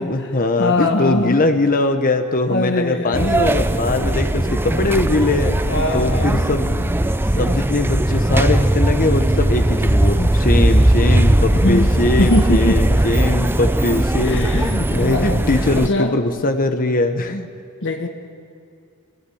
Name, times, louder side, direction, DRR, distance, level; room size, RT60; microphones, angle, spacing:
voice 1, 0.0-5.5 5.9-17.5, left 2 dB, 40° left, 7 dB, 1.1 m, -21 dB
voice 2, 0.6-1.4 2.5-3.3 5.7-6.4 11.5-11.9 12.2-12.8 14.2-15.5 15.7-16.1 17.8-18.1, left 2 dB, 55° left, 3 dB, 1.4 m, -21 dB
sound 1, 3.1-15.9, right 1 dB, 10° right, 0.6 m, -18 dB
23.0 x 17.5 x 8.6 m, 2.6 s
head